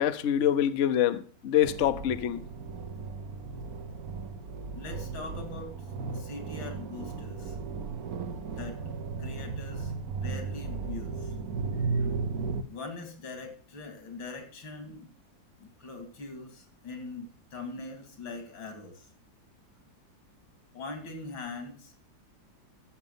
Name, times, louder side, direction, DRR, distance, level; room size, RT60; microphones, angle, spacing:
voice 1, 0.0-2.4, left 10 dB, 60° left, 0.8 m, -25 dB
sound 1, 1.6-12.6, right 4 dB, 55° right, 1.4 m, -35 dB
voice 2, 4.7-5.7 6.1-7.6 8.5-8.8 9.2-11.3 12.6-15.1 15.6-19.1 20.7-21.9, left 3 dB, 90° left, 3.3 m, -42 dB
14.5 x 6.6 x 5.5 m
omnidirectional pair, 2.1 m